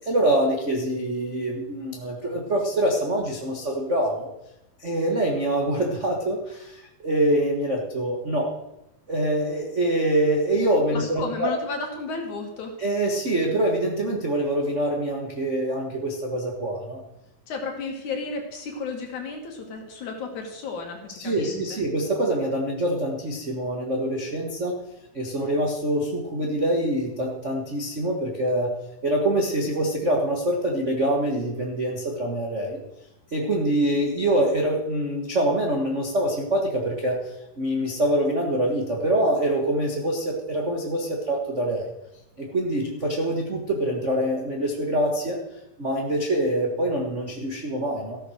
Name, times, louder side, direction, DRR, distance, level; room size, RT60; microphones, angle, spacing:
voice 1, 0.0-4.3 4.8-8.5 9.1-11.5 12.8-17.0 21.2-24.8 25.1-28.7 29.0-32.8 33.3-41.9 42.4-45.4 45.8-48.2, right 1 dB, 45° right, -1 dB, 0.9 m, -25 dB
voice 2, 10.9-12.8 17.5-21.8, left 4 dB, 60° left, 2 dB, 3.3 m, -33 dB
14.5 x 8.0 x 6.4 m, 0.85 s
omnidirectional pair, 4.1 m